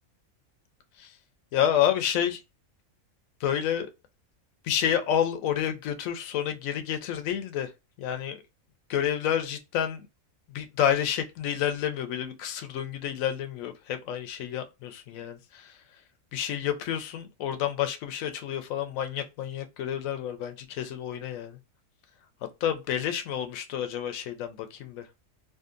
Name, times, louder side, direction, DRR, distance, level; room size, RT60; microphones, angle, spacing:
voice 1, 1.5-2.4 3.4-3.9 4.6-7.7 8.0-8.4 8.9-10.1 10.5-15.8 16.3-21.6 22.6-25.1, left 10 dB, 85° left, 1.0 m, -29 dB
2.7 x 2.4 x 2.4 m
omnidirectional pair, 1.4 m